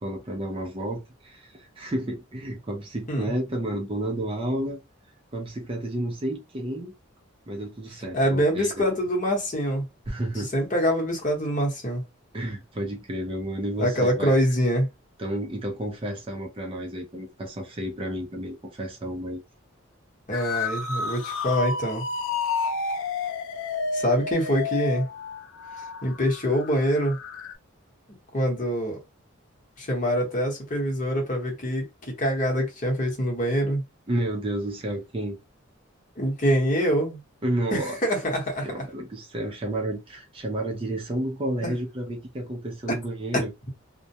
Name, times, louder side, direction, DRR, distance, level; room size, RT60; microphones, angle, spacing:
voice 1, 0.0-4.8 5.3-6.9 7.5-8.8 10.1-10.5 12.3-14.3 15.2-19.4 34.1-35.4 37.4-38.0 38.6-43.5, right 1 dB, 25° right, 0.4 m, -31 dB
voice 2, 8.1-9.8 10.4-12.0 13.8-14.9 20.3-22.0 23.9-25.1 26.0-27.2 28.3-29.0 29.8-33.8 36.2-37.2 37.7-38.7 41.6-41.7 43.3-43.4, equal, 40° left, 1.0 m, -25 dB
sound 1, 20.3-27.5, left 4 dB, 70° left, 0.4 m, -31 dB
2.2 x 2.1 x 2.7 m
head